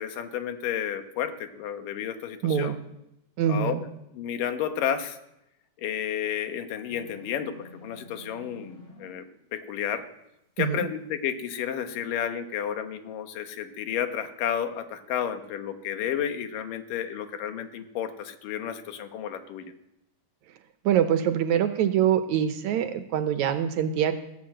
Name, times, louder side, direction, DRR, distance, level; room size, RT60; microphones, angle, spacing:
voice 1, 0.0-2.8 3.5-3.9 4.1-5.2 5.8-9.3 9.5-10.0 10.6-19.7, left 9 dB, 90° left, 8 dB, 2.8 m, -31 dB
voice 2, 2.4-2.8 3.4-3.8 10.6-10.9 20.9-24.1, right 9 dB, 70° right, 9 dB, 2.0 m, -24 dB
sound 1, 6.9-9.2, left 2 dB, 35° left, 4.8 m, -48 dB
15.5 x 11.0 x 7.6 m, 0.86 s
omnidirectional pair, 3.7 m